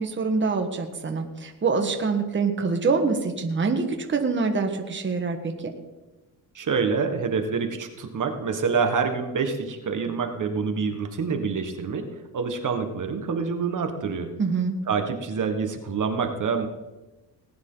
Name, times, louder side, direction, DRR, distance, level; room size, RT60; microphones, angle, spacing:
voice 1, 0.0-5.7 14.4-14.8, right 4 dB, 30° right, 4 dB, 1.5 m, -25 dB
voice 2, 6.5-12.1 12.3-14.3 14.9-16.7, right 5 dB, 50° right, 5 dB, 1.5 m, -26 dB
19.5 x 9.6 x 3.9 m, 1.1 s
cardioid pair, 105°, 40 cm